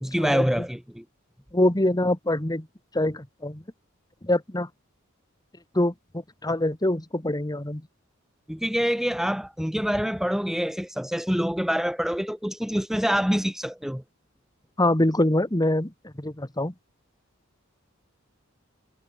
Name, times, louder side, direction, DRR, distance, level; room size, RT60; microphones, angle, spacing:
voice 1, 0.0-1.0 8.5-14.0, equal, ahead, 1.1 m, -26 dB
voice 2, 1.5-2.7 2.9-3.6 4.2-4.7 5.8-7.8 14.8-16.7, left 1 dB, 20° left, 1.8 m, -24 dB
head